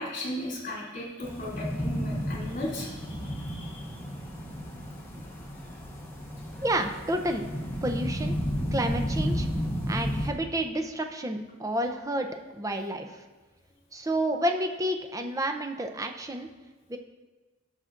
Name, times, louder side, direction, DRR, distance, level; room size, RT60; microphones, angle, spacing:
voice 1, 0.0-3.8, left 1 dB, 40° left, -6 dB, 2.8 m, -36 dB
sound 1, 1.2-10.3, equal, 10° left, 1.1 m, -32 dB
voice 2, 6.6-7.4 7.8-8.3 8.7-9.5 9.9-12.3 12.5-13.1 13.9-16.5 16.9-17.0, right 1 dB, 15° right, 5 dB, 0.5 m, -30 dB
15.0 x 6.5 x 2.5 m, 1.2 s
head